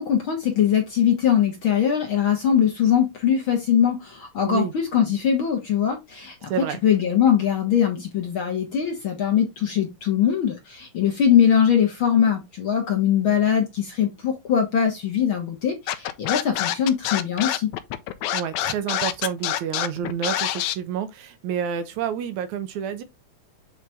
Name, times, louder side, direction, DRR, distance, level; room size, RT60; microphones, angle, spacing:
voice 1, 0.0-6.5 6.8-17.7, left 8 dB, 55° left, 1.6 m, -21 dB
voice 2, 6.5-6.8 18.3-23.0, right 8 dB, 75° right, 2.0 m, -29 dB
Scratching (performance technique), 15.9-20.8, left 12 dB, 75° left, 1.7 m, -26 dB
7.6 x 4.0 x 3.5 m
omnidirectional pair, 3.6 m